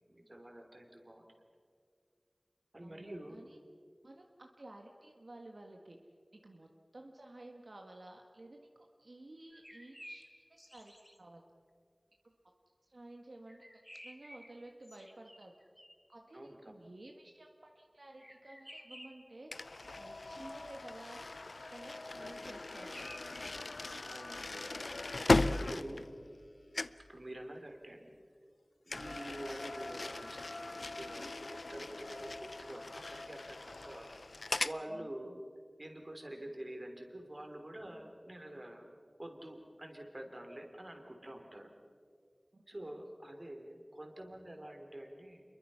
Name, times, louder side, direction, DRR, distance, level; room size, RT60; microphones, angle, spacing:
voice 1, 0.1-1.2 2.7-3.4 16.3-16.7 24.0-24.7 25.3-26.1 27.1-28.1 28.8-34.1 34.6-35.3 35.8-38.9 39.2-41.7 42.7-45.4, right 1 dB, 45° right, 3 dB, 3.6 m, -47 dB
voice 2, 2.8-3.6 4.0-6.0 6.3-10.3 10.7-11.4 12.2-12.3 12.8-13.7 14.0-15.5 16.1-21.4 21.7-23.0 34.9-35.4 42.5-42.6, right 1 dB, 80° right, 2 dB, 1.5 m, -53 dB
sound 1, 9.5-11.2 13.5-16.1 18.2-19.4 22.5-24.3, equal, ahead, 1.5 m, -54 dB
sound 2, 19.5-26.5 26.7-27.1 28.9-34.8, left 2 dB, 85° left, 0.5 m, -38 dB
28.0 x 22.5 x 5.7 m, 2.2 s
wide cardioid pair, 45°, 0 cm